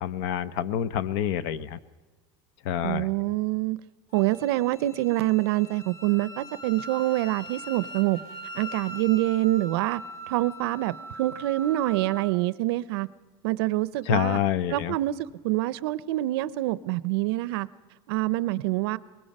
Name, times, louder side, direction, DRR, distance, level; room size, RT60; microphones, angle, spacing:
voice 1, 0.0-1.8 2.6-3.1 14.1-14.9, left 10 dB, 55° left, 18 dB, 0.7 m, -27 dB
voice 2, 2.8-3.8 4.1-8.2 8.5-10.0 10.3-13.1 13.4-14.4 14.7-17.7 18.1-19.0, right 17 dB, 80° right, 18 dB, 0.6 m, -26 dB
Wind instrument woodwind instrument, 4.1-12.3, right 1 dB, 40° left, 1.5 m, -41 dB
23.5 x 20.5 x 5.4 m, 1.3 s
cardioid pair, 175°, 13 cm